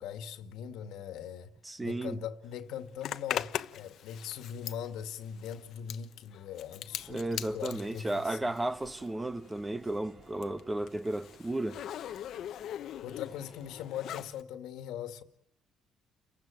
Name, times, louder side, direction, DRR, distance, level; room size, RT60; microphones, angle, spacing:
voice 1, 0.0-1.5 1.8-8.5 13.0-15.2, left 9 dB, 85° left, 2.1 m, -41 dB
voice 2, 1.6-2.2 7.1-11.8, right 1 dB, 15° right, 1.3 m, -34 dB
Zipper (clothing), 3.0-9.2 9.5-14.4, left 11 dB, 70° left, 1.1 m, -41 dB
sound 1, 6.9-13.9, right 3 dB, 40° right, 3.0 m, -59 dB
30.0 x 15.5 x 9.1 m
cardioid pair, 90°, 0 cm